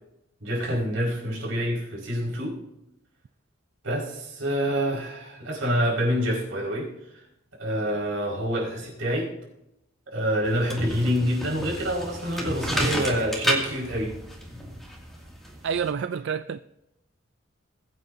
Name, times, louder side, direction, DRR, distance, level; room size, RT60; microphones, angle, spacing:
voice 1, 0.4-2.6 3.8-6.9 7.6-9.3 10.1-14.1, equal, 90° right, -3 dB, 5.0 m, -27 dB
sound 1, 10.4-15.9, equal, ahead, 2.3 m, -31 dB
voice 2, 15.6-16.6, right 6 dB, 60° right, 11 dB, 0.3 m, -28 dB
21.5 x 9.2 x 2.7 m, 0.86 s
head